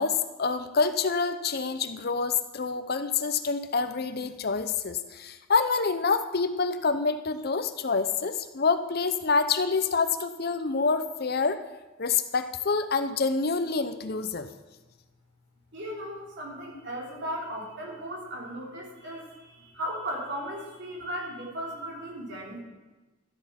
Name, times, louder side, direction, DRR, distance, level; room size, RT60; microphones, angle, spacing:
voice 1, 0.0-11.6 12.0-14.5, left 4 dB, 50° left, 10 dB, 0.6 m, -27 dB
voice 2, 15.7-22.6, equal, 55° right, -3 dB, 3.6 m, -36 dB
13.0 x 8.4 x 5.8 m, 1.2 s
head